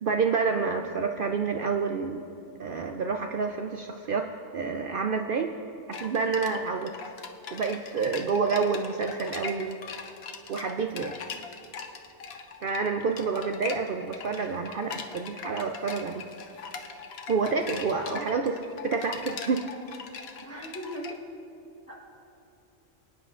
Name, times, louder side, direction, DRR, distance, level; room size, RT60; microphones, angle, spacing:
voice 1, 0.0-2.2 2.6-5.5 5.9-6.9 7.5-10.1 10.5-11.1 12.6-16.2 17.3-18.5 18.8-19.7, right 5 dB, 65° right, 4 dB, 0.5 m, -28 dB
sound 1, 5.9-21.1, left 5 dB, 60° left, 0.8 m, -41 dB
voice 2, 17.9-18.3 20.4-21.2 21.9-22.0, equal, 15° left, -3 dB, 0.9 m, -38 dB
24.0 x 9.4 x 2.4 m, 2.8 s
omnidirectional pair, 1.4 m